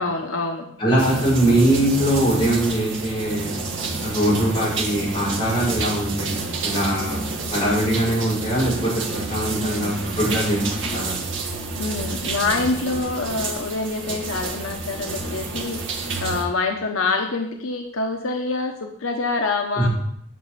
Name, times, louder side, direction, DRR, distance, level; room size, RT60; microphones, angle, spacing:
voice 1, 0.0-0.7 9.5-10.1 11.8-19.9, left 3 dB, 80° left, 3 dB, 1.0 m, -26 dB
voice 2, 0.8-3.5 4.0-6.3 6.6-7.2 7.5-11.2 19.8-19.9, right 1 dB, 25° left, -8 dB, 4.9 m, -22 dB
sound 1, 1.0-16.4, right 3 dB, 65° right, 1.5 m, -29 dB
9.8 x 6.2 x 5.7 m, 0.71 s
head